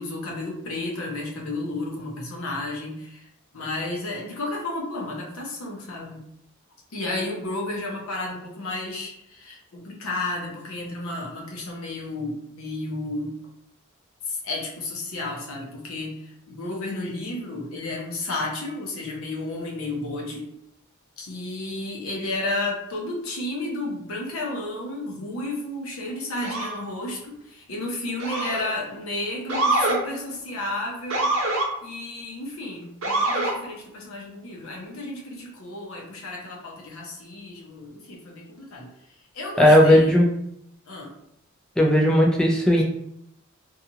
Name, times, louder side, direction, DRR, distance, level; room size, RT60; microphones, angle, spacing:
voice 1, 0.0-3.3 3.5-6.2 6.9-13.4 14.2-20.5 21.2-38.9 39.3-40.1 40.9-41.1, left 2 dB, 80° left, -1 dB, 0.7 m, -32 dB
Motor vehicle (road) / Siren, 26.4-26.8 28.2-28.8 29.5-30.0 31.1-31.7 33.0-33.6, right 2 dB, 75° right, 0.8 m, -24 dB
voice 2, 39.6-40.3 41.8-42.8, left 1 dB, 5° left, -1 dB, 0.3 m, -16 dB
2.7 x 2.3 x 2.7 m, 0.76 s
head